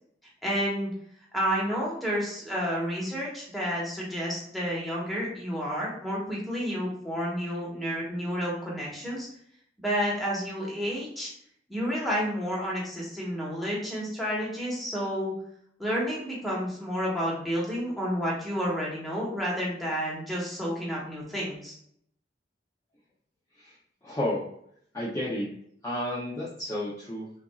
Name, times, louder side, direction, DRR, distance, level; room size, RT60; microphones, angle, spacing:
voice 1, 0.4-0.9 1.3-9.3 9.8-11.3 11.7-15.3 15.8-21.8, equal, ahead, -6 dB, 1.2 m, -30 dB
voice 2, 24.0-24.4 24.9-25.5 25.8-27.3, left 1 dB, 20° left, -7 dB, 0.6 m, -31 dB
5.7 x 2.6 x 2.3 m, 0.68 s
head